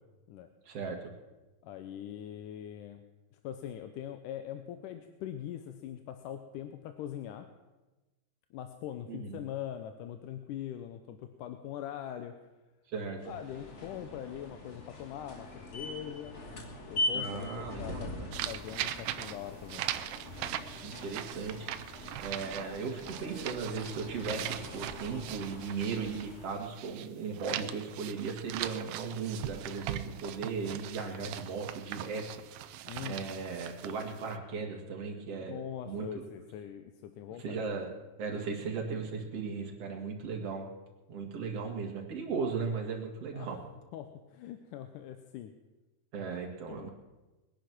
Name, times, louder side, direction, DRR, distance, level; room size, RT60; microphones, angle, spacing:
voice 1, 0.7-1.1 9.1-9.4 12.9-13.3 17.1-18.3 20.8-32.3 32.5-32.7 33.0-35.6 35.9-36.3 37.4-37.9 38.2-40.7 41.1-43.6 46.1-46.9, right 5 dB, 55° right, 1 dB, 3.0 m, -37 dB
voice 2, 1.6-3.0 3.4-7.5 8.5-12.4 13.2-16.4 16.9-18.1 18.5-19.9 32.8-33.3 35.4-37.6 43.3-43.6 43.9-45.5 46.7-46.9, left 10 dB, 85° left, 8 dB, 2.3 m, -42 dB
sound 1, 13.2-26.7, left 1 dB, 35° left, 1.2 m, -42 dB
sound 2, 18.3-27.1 27.3-34.4, right 12 dB, 75° right, 1.8 m, -40 dB
21.5 x 10.5 x 6.1 m, 1.1 s
omnidirectional pair, 3.6 m